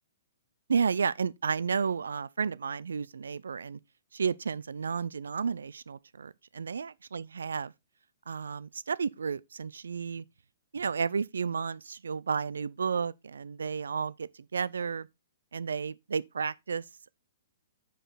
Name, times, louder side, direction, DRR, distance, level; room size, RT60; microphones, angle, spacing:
voice 1, 0.7-3.8 4.1-7.7 8.3-10.2 10.7-15.1 15.5-16.8, right 6 dB, 80° right, 0.4 m, -32 dB
6.7 x 5.0 x 4.1 m
hypercardioid pair, 125°, 0 cm